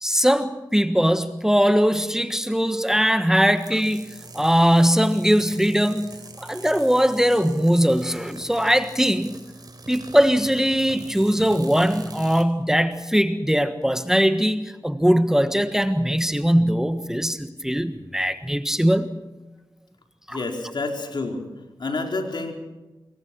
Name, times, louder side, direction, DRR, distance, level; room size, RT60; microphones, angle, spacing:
voice 1, 0.0-4.1 4.3-6.1 6.4-9.3 9.9-19.1 20.3-20.4, equal, 5° right, 9 dB, 1.5 m, -20 dB
sound 1, 3.5-12.5, right 2 dB, 50° right, 4.1 m, -43 dB
voice 2, 20.3-21.4 21.8-22.5, left 3 dB, 60° left, 3 dB, 4.6 m, -28 dB
25.5 x 22.0 x 6.1 m, 1.1 s
cardioid pair, 50°, 9 cm